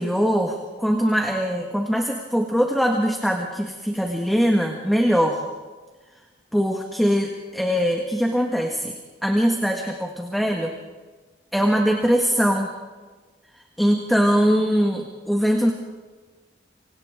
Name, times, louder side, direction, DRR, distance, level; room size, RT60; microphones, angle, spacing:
voice 1, 0.0-5.4 6.5-8.9 9.2-10.7 11.5-12.7 13.8-15.7, equal, ahead, 1 dB, 1.6 m, -21 dB
28.5 x 25.0 x 3.7 m, 1.3 s
head